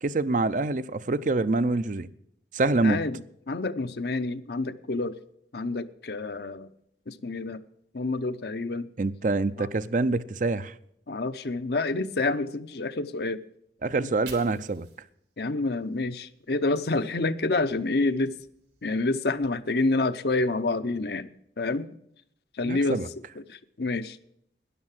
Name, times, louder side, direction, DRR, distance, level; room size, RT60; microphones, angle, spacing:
voice 1, 0.0-2.1 2.5-3.0 9.0-10.7 13.8-14.9 22.7-23.1, right 3 dB, 45° right, 0.5 m, -26 dB
voice 2, 2.8-5.2 5.5-6.7 7.1-7.6 7.9-8.9 9.6-9.7 11.1-13.4 14.0-14.1 15.4-18.3 18.8-21.3 21.6-21.9 22.6-23.0 23.4-24.2, left 2 dB, 65° left, 0.7 m, -28 dB
Fire, 13.9-17.0 17.4-19.5, right 6 dB, 85° right, 3.7 m, -53 dB
12.5 x 10.5 x 7.4 m
head